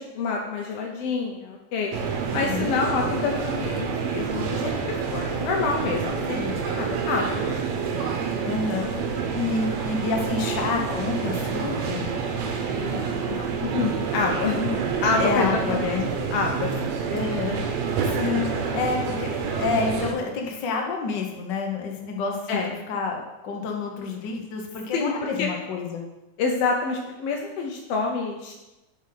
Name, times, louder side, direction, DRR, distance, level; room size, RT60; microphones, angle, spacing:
voice 1, 0.0-1.9 2.3-7.7 12.7-14.6 15.0-16.0 16.3-17.0 18.2-18.6 22.5-22.7 24.9-25.5 26.4-28.5, left 4 dB, 70° left, 1 dB, 1.5 m, -28 dB
sound 1, 1.9-20.1, right 5 dB, 70° right, 1.9 m, -28 dB
voice 2, 2.3-2.7 6.3-6.6 8.4-8.9 9.3-12.1 14.5-14.7 15.2-16.0 17.1-17.6 18.0-26.0, left 4 dB, 90° left, 1 dB, 0.9 m, -28 dB
7.5 x 5.1 x 5.7 m, 1.0 s
omnidirectional pair, 3.4 m